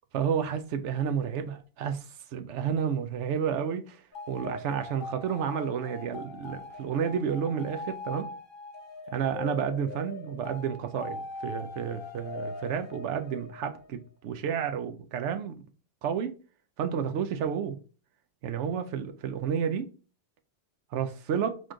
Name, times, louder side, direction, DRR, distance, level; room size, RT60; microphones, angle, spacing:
voice 1, 0.1-2.1 2.3-8.3 9.1-15.6 16.0-16.4 16.8-17.8 18.4-19.9 20.9-21.6, right 7 dB, 85° right, 0.9 m, -31 dB
sound 1, 4.1-13.9, left 3 dB, 55° left, 0.8 m, -41 dB
4.2 x 3.1 x 3.7 m
omnidirectional pair, 1.2 m